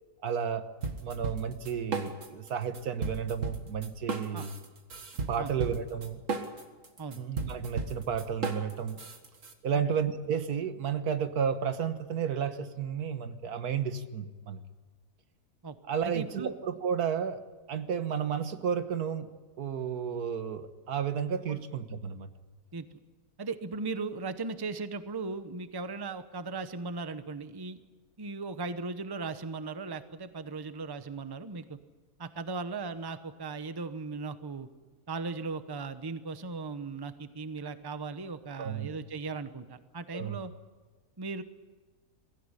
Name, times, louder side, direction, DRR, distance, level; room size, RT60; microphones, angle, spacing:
voice 1, 0.2-0.7 1.0-4.5 5.3-6.2 7.2-9.0 9.6-14.6 15.9-17.4 17.7-19.3 19.6-22.3 38.6-38.9 40.1-40.4, right 7 dB, 80° right, 10 dB, 1.7 m, -32 dB
sound 1, 0.8-2.5 2.7-9.5, right 4 dB, 55° right, 2.1 m, -35 dB
voice 2, 16.0-16.5 21.5-21.6 22.7-23.0 23.4-27.8 28.2-31.8 32.2-34.7 35.1-40.5 41.2-41.4, right 4 dB, 20° right, 11 dB, 0.8 m, -37 dB
23.0 x 15.5 x 9.9 m, 1.3 s
omnidirectional pair, 1.6 m